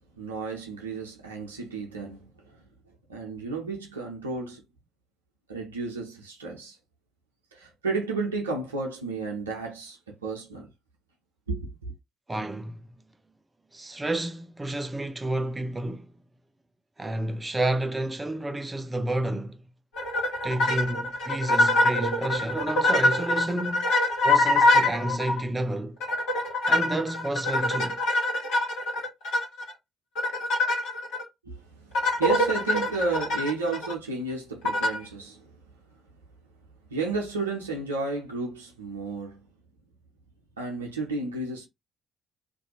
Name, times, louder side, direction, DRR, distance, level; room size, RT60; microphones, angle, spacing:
voice 1, 0.2-2.6 3.1-4.6 5.5-6.8 7.5-10.7 11.5-11.7 31.4-35.5 36.9-39.5 40.6-41.7, right 3 dB, 80° right, 0.6 m, -32 dB
voice 2, 12.3-12.8 13.7-16.1 17.0-19.6 20.4-23.9 24.2-26.0 26.7-28.0, right 1 dB, 20° right, 0.5 m, -30 dB
sound 1, 19.9-25.4 26.0-29.7 30.1-31.2 31.9-33.9 34.6-35.1, left 2 dB, 65° left, 1.2 m, -24 dB
2.6 x 2.2 x 2.9 m
figure-of-eight pair, 40°, 0 cm